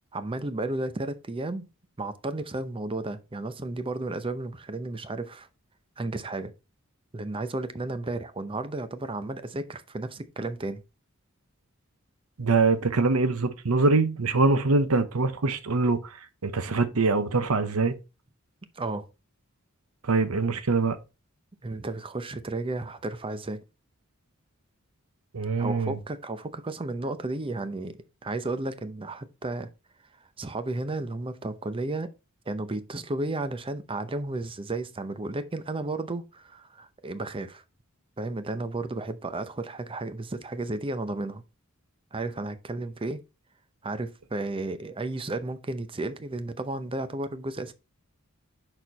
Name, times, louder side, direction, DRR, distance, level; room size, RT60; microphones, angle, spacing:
voice 1, 0.1-1.7 2.0-5.5 6.0-6.5 7.1-10.8 18.8-19.1 21.6-23.6 25.6-29.7 30.2-32.1 32.5-37.6 38.2-41.4 42.1-43.2 43.8-47.7, right 2 dB, 25° right, 0.6 m, -33 dB
voice 2, 12.4-18.0 20.0-21.0 25.3-26.0, right 3 dB, 85° right, 0.8 m, -24 dB
6.5 x 4.4 x 3.9 m
head